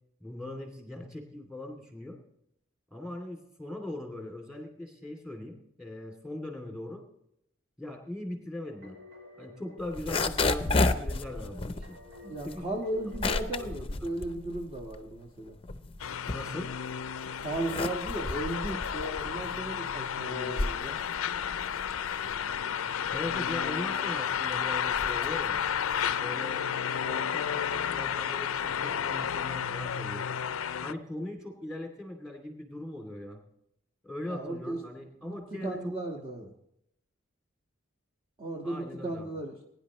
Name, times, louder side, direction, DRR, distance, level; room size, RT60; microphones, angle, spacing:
voice 1, 0.2-2.2 2.9-7.0 7.8-9.0 9.4-12.0 12.4-12.8 13.6-13.7 16.3-16.7 23.1-25.6 26.2-26.7 27.0-30.3 30.8-33.4 34.0-35.9 38.6-39.3, left 1 dB, 5° right, 2 dB, 2.7 m, -40 dB
sound 1, 8.6-13.8, left 3 dB, 70° right, 3.8 m, -52 dB
sound 2, 9.8-15.1 15.5-16.9 17.4-26.2, left 3 dB, 25° left, 0.6 m, -33 dB
voice 2, 12.2-15.6 17.4-21.0 34.3-34.8 35.2-35.4 35.6-36.5 38.4-39.7, right 1 dB, 25° right, -2 dB, 1.5 m, -36 dB
sound 3, 16.0-30.9, left 8 dB, 90° left, 0.5 m, -32 dB
21.0 x 10.5 x 3.1 m, 0.75 s
head